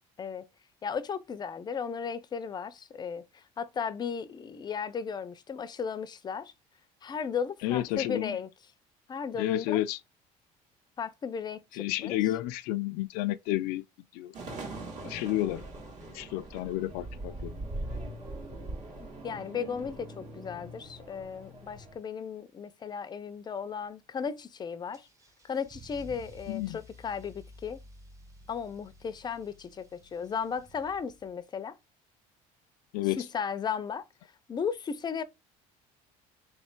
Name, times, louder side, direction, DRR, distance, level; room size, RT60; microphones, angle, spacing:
voice 1, 0.8-6.5 7.0-8.5 9.1-9.8 11.0-12.2 19.0-25.1 25.4-27.8 28.5-31.8 33.2-35.2, left 6 dB, 25° left, 0.5 m, -35 dB
voice 2, 7.6-8.4 9.4-10.0 11.7-13.8 14.1-14.3 15.0-15.6 16.1-17.5 26.5-26.8 32.9-33.2, left 15 dB, 80° left, 0.4 m, -31 dB
sound 1, 14.3-22.0, right 2 dB, 50° right, 1.9 m, -41 dB
Car / Engine starting / Accelerating revving vroom, 24.9-31.4, equal, 20° right, 1.0 m, -53 dB
3.2 x 3.2 x 4.4 m
cardioid pair, 115°, 16 cm